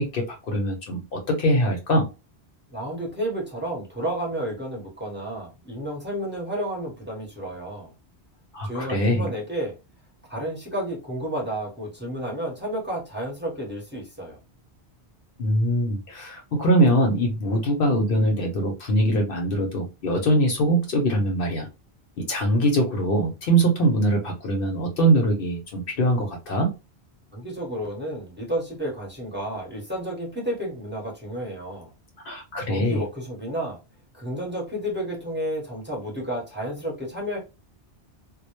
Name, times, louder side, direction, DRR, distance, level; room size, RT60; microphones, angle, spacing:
voice 1, 0.0-2.1 8.5-9.3 15.4-21.7 22.2-26.7 32.3-33.0, right 1 dB, 60° left, 0.7 m, -22 dB
voice 2, 2.7-7.9 8.6-9.7 10.3-14.4 27.3-31.9 32.6-33.8 34.1-37.4, right 1 dB, 10° right, 0.8 m, -31 dB
2.2 x 2.1 x 2.9 m
omnidirectional pair, 1.1 m